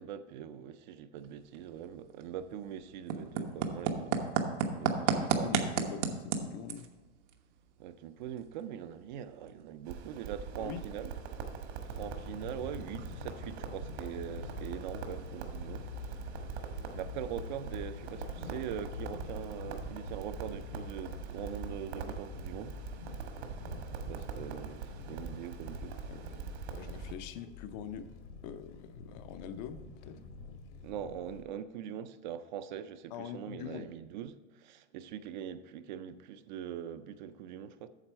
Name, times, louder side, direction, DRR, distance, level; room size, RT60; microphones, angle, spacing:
voice 1, 0.0-4.1 4.7-5.9 7.8-11.1 11.9-16.1 16.9-22.8 24.1-26.0 30.8-37.9, right 9 dB, 45° right, 0.4 m, -42 dB
sound 1, 1.1-19.3, right 6 dB, 85° right, 1.2 m, -39 dB
voice 2, 5.1-6.9 10.6-10.8 26.1-28.1 28.4-30.2 33.1-33.9, left 8 dB, 40° left, 0.5 m, -44 dB
Crackle, 9.9-27.1, right 7 dB, 65° right, 1.3 m, -43 dB
sound 2, 11.9-31.4, left 6 dB, 75° left, 1.6 m, -46 dB
8.9 x 6.8 x 4.4 m
supercardioid pair, 160°, 35 cm